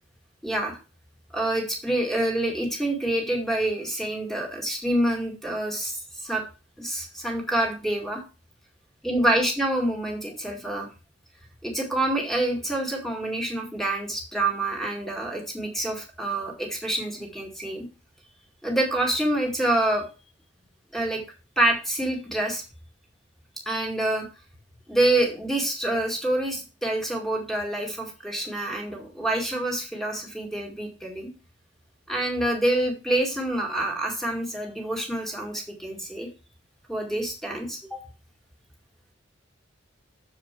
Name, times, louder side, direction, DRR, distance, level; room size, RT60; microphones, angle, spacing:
voice 1, 0.4-0.8 1.3-6.4 6.8-8.2 9.0-10.9 11.6-17.9 18.6-20.0 20.9-21.2 21.6-22.6 23.7-24.3 24.9-31.3 32.1-36.3 36.9-38.0, right 1 dB, ahead, 1 dB, 2.0 m, -27 dB
7.2 x 4.7 x 5.8 m, 0.33 s
head